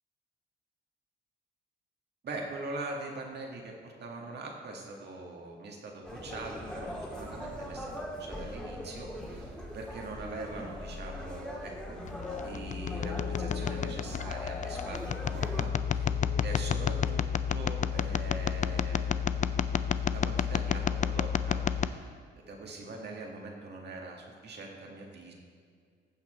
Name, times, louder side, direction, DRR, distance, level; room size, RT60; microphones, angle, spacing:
voice 1, 2.2-12.0 12.4-16.1 16.4-19.2 20.1-25.3, right 2 dB, 55° right, 0 dB, 2.0 m, -42 dB
sound 1, 6.0-15.6, equal, 5° left, 2.0 m, -41 dB
sound 2, 12.1-21.9, left 8 dB, 40° left, 0.4 m, -31 dB
15.0 x 5.9 x 4.5 m, 2.2 s
cardioid pair, 90°, 20 cm